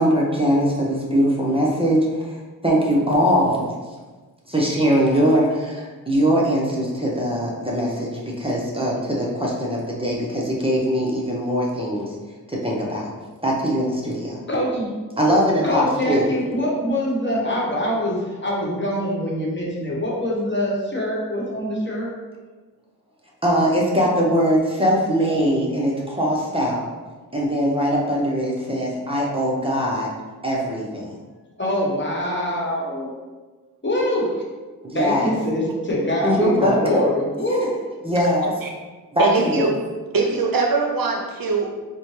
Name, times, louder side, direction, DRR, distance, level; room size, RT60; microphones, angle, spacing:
voice 1, 0.0-2.4 2.6-3.7 4.5-12.1 12.5-13.1 13.4-14.4 15.2-16.3 23.4-26.9 27.3-30.1 30.4-31.1 34.8-35.3 36.2-37.0 38.0-38.5 39.1-39.7, equal, 15° right, -4 dB, 0.7 m, -21 dB
voice 2, 14.5-14.9 15.6-22.1 31.6-33.1 33.8-34.3 34.9-37.7, left 1 dB, 30° left, -5 dB, 1.1 m, -24 dB
voice 3, 39.2-39.7 40.1-41.7, right 4 dB, 70° right, 1 dB, 0.6 m, -21 dB
4.2 x 2.2 x 3.1 m, 1.3 s
wide cardioid pair, 65°, 36 cm